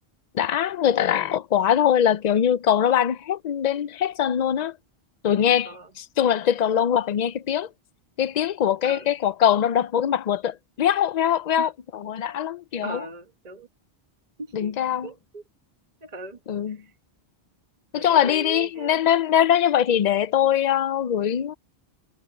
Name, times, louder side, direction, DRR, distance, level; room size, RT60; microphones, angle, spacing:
voice 1, 0.3-4.8 5.2-7.7 8.2-13.0 14.5-15.1 16.5-16.8 17.9-21.5, left 9 dB, 50° left, 0.5 m, -22 dB
voice 2, 12.8-13.7 14.4-14.8 15.0-15.4 16.0-16.4 16.7-16.9 17.9-19.0, right 3 dB, 40° right, 1.3 m, -39 dB
omnidirectional pair, 1.1 m